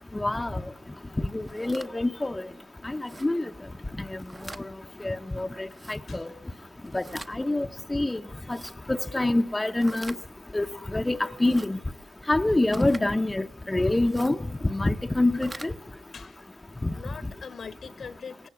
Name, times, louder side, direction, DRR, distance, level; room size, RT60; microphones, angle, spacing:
voice 1, 0.1-0.6 1.3-2.5 2.8-3.5 4.0-4.2 5.0-6.3 6.9-8.2 8.5-8.6 8.9-10.2 10.5-10.7 10.9-11.8 12.3-14.4 14.6-15.7 16.8-16.9, left 2 dB, 20° left, 0.8 m, -26 dB
sound 1, 1.3-1.9 3.0-3.3 4.1-4.6 5.7-6.0 6.8-7.3 8.4-8.8 9.8-10.2 11.3-11.7 12.7-13.0 14.0-14.4 15.2-15.7, right 2 dB, 25° right, 0.9 m, -43 dB
voice 2, 16.9-18.5, left 6 dB, 60° left, 1.2 m, -42 dB
17.5 x 17.5 x 9.7 m
supercardioid pair, 60°, 0 cm